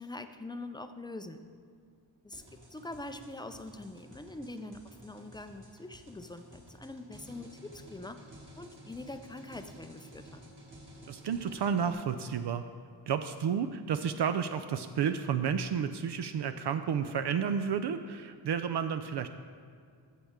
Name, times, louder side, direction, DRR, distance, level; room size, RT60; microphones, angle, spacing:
voice 1, 0.0-1.4 2.2-2.4 2.7-8.2 8.6-10.4, left 2 dB, 10° left, 8 dB, 0.4 m, -44 dB
sound 1, 2.3-11.9, equal, 40° right, 2.4 m, -53 dB
voice 2, 11.1-12.6 13.1-19.3, right 7 dB, 65° right, 9 dB, 0.5 m, -31 dB
14.0 x 7.3 x 3.6 m, 2.1 s
wide cardioid pair, 115°, 45 cm